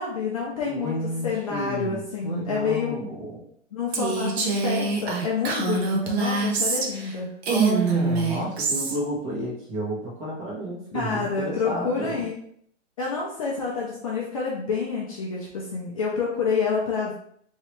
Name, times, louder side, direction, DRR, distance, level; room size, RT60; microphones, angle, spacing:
voice 1, 0.0-3.0 3.7-7.3 10.9-12.4 13.0-17.2, left 5 dB, 30° left, -4 dB, 0.5 m, -28 dB
voice 2, 0.6-3.4 7.5-12.2, right 1 dB, 30° right, -4 dB, 1.0 m, -31 dB
Female speech woman speaking, 3.9-7.1 7.4-9.0, right 3 dB, 55° right, 0.8 m, -25 dB
3.1 x 2.7 x 3.0 m, 0.66 s
hypercardioid pair, 155°, 38 cm